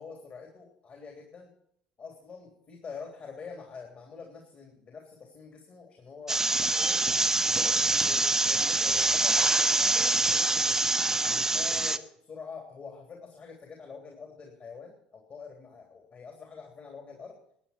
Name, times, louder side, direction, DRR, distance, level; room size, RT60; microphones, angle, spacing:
voice 1, 0.0-1.5 2.0-7.0 7.8-10.1 10.6-11.0 11.3-17.4, left 5 dB, 40° left, 2 dB, 3.3 m, -46 dB
sound 1, 6.3-12.0, right 2 dB, 10° right, 0.9 m, -25 dB
21.5 x 8.8 x 4.4 m, 0.69 s
figure-of-eight pair, 60°, 4 cm